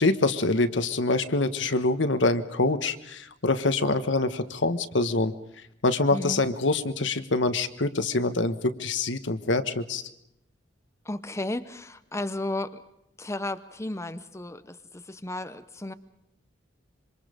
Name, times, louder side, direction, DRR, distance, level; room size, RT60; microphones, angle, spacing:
voice 1, 0.0-5.3 5.8-10.0, left 2 dB, 70° left, 10 dB, 1.4 m, -25 dB
voice 2, 6.1-6.4 11.0-12.8 13.2-15.9, left 1 dB, 15° left, 11 dB, 0.8 m, -34 dB
27.0 x 24.5 x 5.1 m, 0.81 s
head